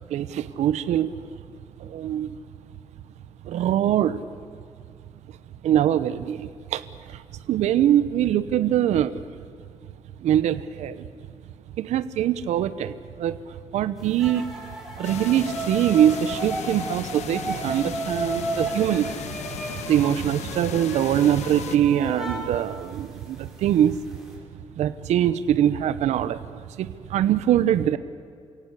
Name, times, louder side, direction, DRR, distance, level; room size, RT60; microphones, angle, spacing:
voice 1, 0.1-1.1 1.8-2.3 3.4-4.2 5.6-6.8 7.5-9.2 10.2-11.1 11.8-13.4 13.7-14.5 15.0-19.3 19.7-24.0 24.8-28.0, right 11 dB, 80° right, 14 dB, 0.9 m, -23 dB
sound 1, 14.2-23.5 23.9-24.3, right 2 dB, ahead, 5.3 m, -34 dB
sound 2, 15.0-21.8, left 8 dB, 75° left, 1.3 m, -36 dB
28.5 x 17.0 x 8.2 m, 2.4 s
cardioid pair, 150°, 12 cm